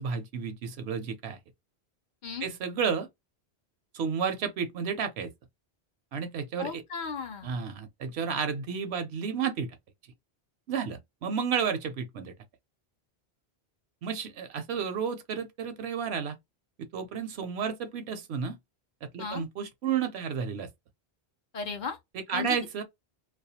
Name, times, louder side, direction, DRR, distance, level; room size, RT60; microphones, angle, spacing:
voice 1, 0.0-1.4 2.4-3.1 3.9-5.3 6.1-6.8 7.4-9.7 10.7-12.3 14.0-16.4 16.9-18.6 19.0-20.7 22.1-22.8, right 6 dB, 75° right, 0.8 m, -32 dB
voice 2, 6.6-7.6 19.2-19.4 21.5-22.0 22.3-22.6, left 5 dB, 55° left, 0.7 m, -35 dB
2.3 x 2.2 x 2.7 m
omnidirectional pair, 1.1 m